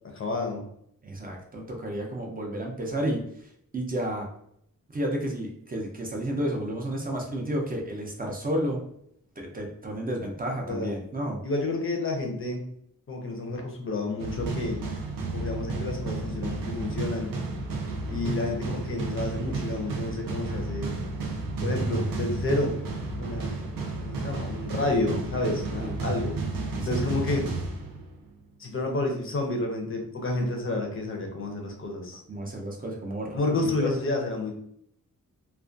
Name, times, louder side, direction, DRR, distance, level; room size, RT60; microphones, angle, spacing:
voice 1, 0.1-0.6 10.7-10.9 11.4-12.7 13.1-14.8 15.3-17.3 18.1-20.9 21.6-22.8 23.2-23.6 24.0-26.3 26.8-27.5 28.6-32.2 33.4-34.5, left 2 dB, 40° left, 2 dB, 0.5 m, -30 dB
voice 2, 1.0-4.3 4.9-8.8 9.4-11.4 18.2-18.3 20.4-20.7 25.8-25.9 26.7-27.0 32.3-33.9, right 1 dB, 25° right, 0 dB, 0.4 m, -32 dB
sound 1, 14.2-28.4, right 3 dB, 85° right, 0.6 m, -32 dB
2.3 x 2.1 x 2.5 m, 0.71 s
wide cardioid pair, 130°, 34 cm